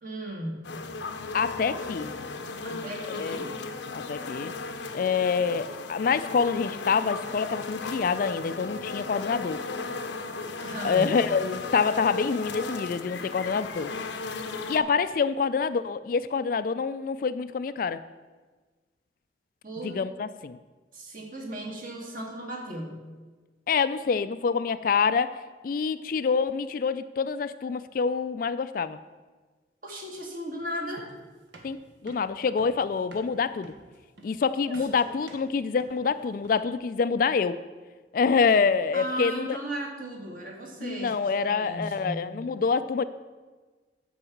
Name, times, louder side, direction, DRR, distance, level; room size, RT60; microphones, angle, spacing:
voice 1, 0.0-0.8 2.6-3.5 10.5-11.2 19.6-20.0 20.9-23.0 29.8-31.1 34.7-34.9 38.9-42.3, right 1 dB, 50° right, 0 dB, 1.9 m, -36 dB
sound 1, 0.6-14.8, left 3 dB, 80° left, 0.8 m, -36 dB
voice 2, 1.3-2.1 3.1-3.4 3.9-4.5 4.9-9.6 10.8-13.9 14.7-18.0 19.8-20.6 23.7-25.4 25.6-29.0 31.6-33.7 34.2-37.6 38.1-39.6 40.8-43.0, left 5 dB, 50° left, 13 dB, 0.3 m, -26 dB
sound 2, 31.0-36.8, right 1 dB, 80° right, 1.3 m, -51 dB
9.9 x 4.8 x 7.2 m, 1.3 s
head